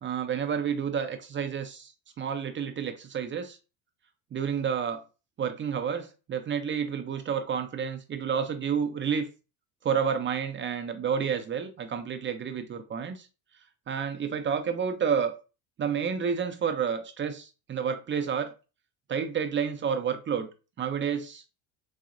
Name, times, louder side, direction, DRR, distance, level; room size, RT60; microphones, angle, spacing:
voice 1, 0.0-1.9 2.2-3.6 4.3-5.0 5.4-9.3 9.8-13.3 13.9-15.3 15.8-18.5 19.1-20.5 20.8-21.4, right 7 dB, 30° right, 7 dB, 0.5 m, -30 dB
4.1 x 2.7 x 2.5 m, 0.31 s
supercardioid pair, 85°, 42 cm